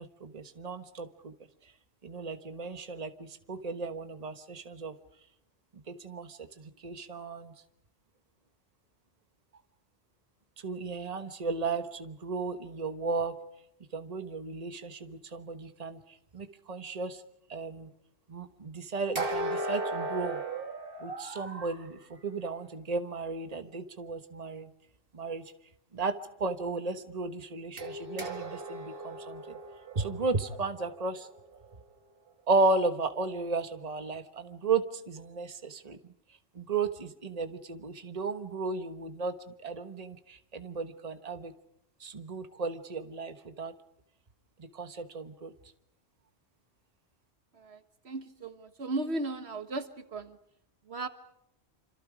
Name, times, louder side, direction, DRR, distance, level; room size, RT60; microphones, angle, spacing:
voice 1, 0.0-1.3 2.0-4.9 5.9-6.4 6.8-7.5 10.6-13.4 13.9-16.0 16.3-17.2 17.5-17.9 18.3-20.4 21.0-24.7 25.1-25.5 25.9-29.4 29.9-31.3 32.5-36.0 36.6-39.4 39.6-41.5 42.0-43.8 44.6-45.5, right 3 dB, 35° right, 8 dB, 1.3 m, -34 dB
sound 1, 19.2-21.8 27.8-31.8, right 2 dB, 60° right, 2.2 m, -37 dB
voice 2, 48.0-50.4 50.9-51.1, right 2 dB, 75° right, 9 dB, 1.7 m, -36 dB
27.0 x 26.5 x 5.0 m, 0.75 s
omnidirectional pair, 1.1 m